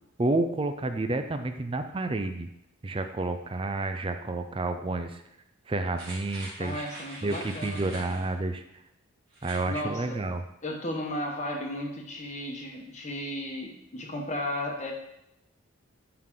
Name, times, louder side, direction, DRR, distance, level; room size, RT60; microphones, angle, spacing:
voice 1, 0.2-2.5 2.8-5.2 5.7-6.9 7.2-8.6 9.4-10.4, right 2 dB, 25° right, 8 dB, 0.4 m, -30 dB
sound 1, 5.9-8.3 9.3-9.7 10.1-10.2, right 2 dB, 50° right, 2.6 m, -44 dB
voice 2, 6.6-8.1 9.7-10.2 10.6-14.9, left 1 dB, 35° left, 1 dB, 1.1 m, -34 dB
11.0 x 4.0 x 3.7 m, 0.81 s
head